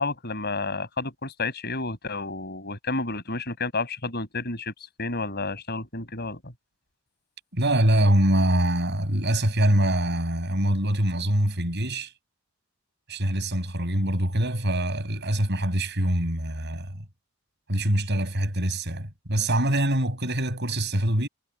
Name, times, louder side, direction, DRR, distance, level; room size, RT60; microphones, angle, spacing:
voice 1, 0.0-4.7 5.0-6.5, left 3 dB, 50° left, 7.5 m, -30 dB
voice 2, 7.5-12.1 13.1-17.0 17.7-21.3, right 1 dB, 55° right, 7.9 m, -24 dB
head